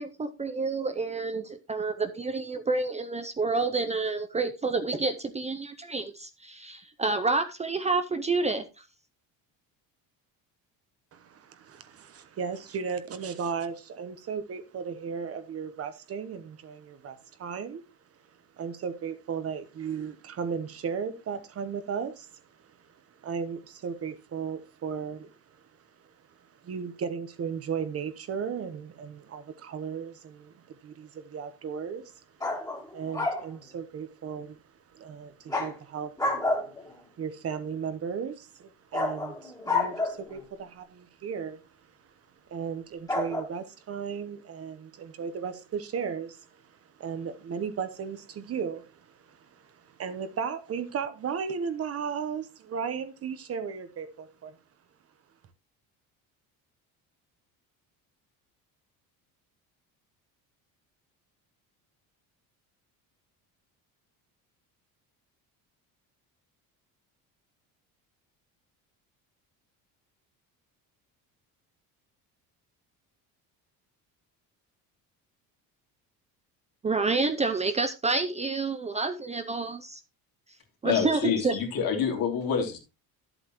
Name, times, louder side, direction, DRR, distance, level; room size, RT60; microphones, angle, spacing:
voice 1, 0.0-8.6 76.8-80.0 80.8-81.9, right 3 dB, 20° right, 0.6 m, -29 dB
voice 2, 11.1-17.8 18.2-25.7 26.0-26.1 26.4-34.6 34.9-36.4 36.9-41.7 42.0-42.1 42.4-54.5, right 6 dB, 40° right, 1.0 m, -36 dB
sound 1, 32.4-33.5 35.5-35.7 36.2-36.9 38.9-40.4 43.1-43.4, left 2 dB, 10° left, 2.1 m, -29 dB
voice 3, 80.8-82.8, left 7 dB, 65° left, 2.9 m, -27 dB
11.0 x 8.0 x 3.0 m
cardioid pair, 140°, 37 cm